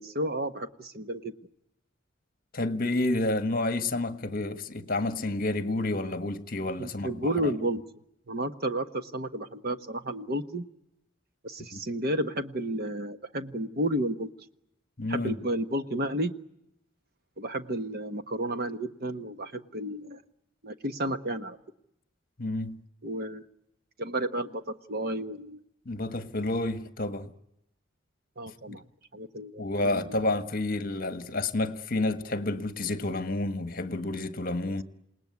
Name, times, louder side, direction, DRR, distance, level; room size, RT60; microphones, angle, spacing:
voice 1, 0.0-1.3 6.8-7.8 8.3-10.6 11.4-14.3 15.1-16.3 17.4-20.2 20.6-21.6 23.0-23.4 24.0-24.6 24.9-25.6 28.4-28.8 29.1-30.1, right 1 dB, 50° right, 1.3 m, -32 dB
voice 2, 2.5-7.1 7.4-7.5 11.7-11.8 15.0-15.3 22.4-22.8 25.8-27.3 28.7-28.8 29.6-34.8, left 2 dB, 45° left, 1.5 m, -30 dB
28.5 x 19.0 x 9.6 m
head